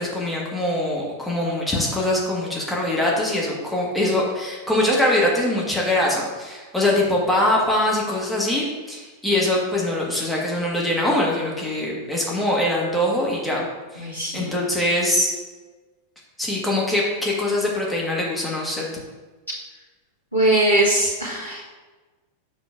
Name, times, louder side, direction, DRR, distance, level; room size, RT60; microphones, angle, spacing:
voice 1, 0.0-13.6 13.9-15.3 16.4-18.9, left 1 dB, 5° left, -4 dB, 1.3 m, -23 dB
voice 2, 14.0-14.5 20.3-21.6, right 1 dB, 85° left, -8 dB, 1.5 m, -21 dB
7.0 x 6.0 x 2.4 m, 1.3 s
figure-of-eight pair, 90°, 0 cm